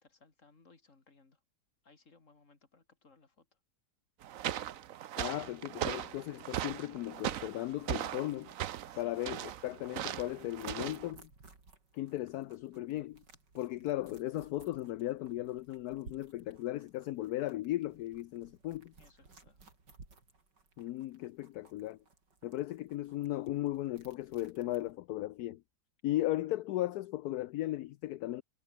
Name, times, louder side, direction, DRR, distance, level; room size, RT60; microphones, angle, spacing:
voice 1, 0.0-1.4 1.8-3.6 8.9-9.2 19.0-19.6, left 3 dB, 45° left, 3.3 m, -64 dB
sound 1, 4.2-11.1, right 11 dB, 60° right, 1.0 m, -39 dB
voice 2, 5.2-8.5 9.0-11.3 11.9-13.2 13.5-18.9 20.8-22.0 22.4-25.6 26.0-28.4, left 15 dB, 70° left, 1.1 m, -36 dB
sound 2, 7.1-24.9, right 3 dB, 90° right, 4.8 m, -60 dB
omnidirectional pair, 1.8 m